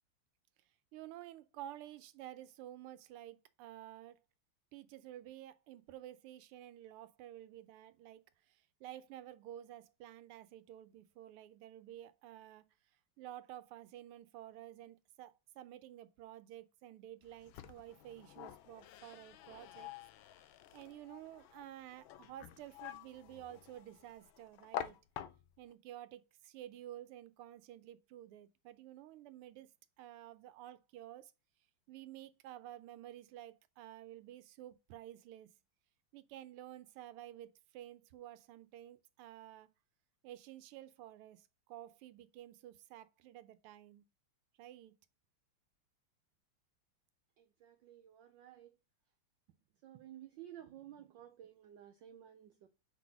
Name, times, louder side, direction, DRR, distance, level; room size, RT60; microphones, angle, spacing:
voice 1, 0.9-4.2 4.7-12.6 13.2-19.9 20.7-25.0 25.6-29.7 30.0-31.3 31.9-35.5 36.1-39.7 40.2-44.1 44.6-44.9, right 12 dB, 90° right, 1.5 m, -52 dB
sound 1, 17.2-25.7, left 11 dB, 75° left, 1.3 m, -49 dB
voice 2, 47.4-48.7 49.8-52.7, right 11 dB, 70° right, 1.1 m, -54 dB
5.2 x 4.0 x 5.8 m
omnidirectional pair, 2.4 m